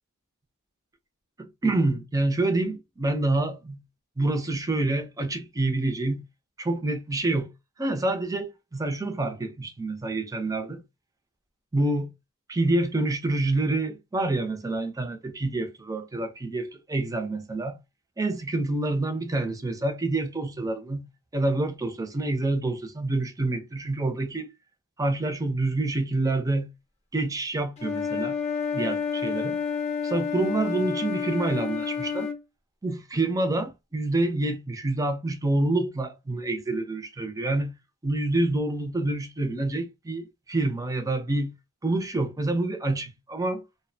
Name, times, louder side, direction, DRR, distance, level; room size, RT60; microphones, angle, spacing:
voice 1, 1.4-3.8 4.2-6.2 6.6-7.5 7.8-10.8 11.7-12.1 12.5-17.8 18.2-21.1 21.3-24.5 25.0-26.7 27.1-28.4 28.7-29.6 30.0-32.3 32.8-37.7 38.0-41.5 41.8-43.6, right 2 dB, 15° right, 0.5 m, -27 dB
Wind instrument woodwind instrument, 27.8-32.4, left 6 dB, 30° left, 0.6 m, -29 dB
2.4 x 2.0 x 2.6 m
head